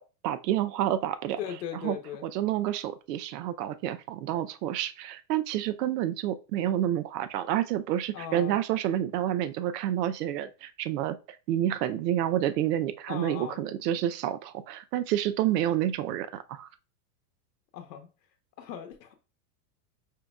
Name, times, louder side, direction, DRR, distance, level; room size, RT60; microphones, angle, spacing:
voice 1, 0.2-1.4 1.8-2.0 2.2-16.7, right 12 dB, 75° right, 0.6 m, -29 dB
voice 2, 1.4-2.3 8.1-8.6 13.1-13.6 17.7-18.1 18.6-19.1, left 8 dB, 85° left, 0.8 m, -38 dB
5.1 x 2.7 x 2.3 m
supercardioid pair, 140°, 48 cm